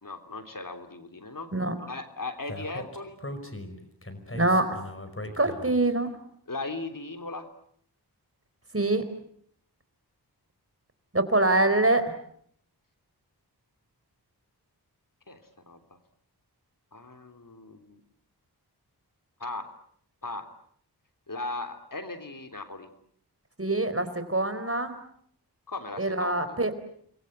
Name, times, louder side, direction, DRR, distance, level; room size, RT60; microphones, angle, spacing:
voice 1, 0.0-1.5 1.8-3.2 6.5-7.5 15.3-15.8 16.9-18.0 19.4-19.7 20.2-20.5 21.3-22.9 25.7-26.6, left 2 dB, 55° left, 7 dB, 3.5 m, -37 dB
Speech, 2.5-5.9, left 1 dB, 30° left, 5.4 m, -39 dB
voice 2, 4.3-4.8 5.4-6.1 8.7-9.1 11.1-12.1 23.6-25.0 26.0-26.7, right 2 dB, 35° right, 10 dB, 4.2 m, -24 dB
30.0 x 22.5 x 8.1 m, 0.66 s
cardioid pair, 45°, 40 cm